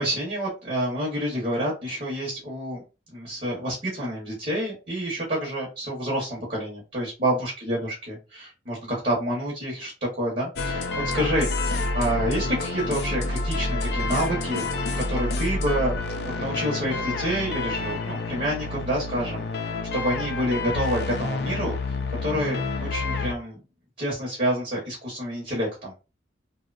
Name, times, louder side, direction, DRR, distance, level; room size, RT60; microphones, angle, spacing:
voice 1, 0.0-2.8 3.1-9.9 10.2-14.7 15.0-15.9 16.2-21.9 22.2-23.6 24.0-25.9, equal, 40° right, -3 dB, 0.8 m, -28 dB
sound 1, 10.6-23.3, left 3 dB, 55° left, 0.4 m, -28 dB
2.7 x 2.1 x 2.3 m, 0.30 s
head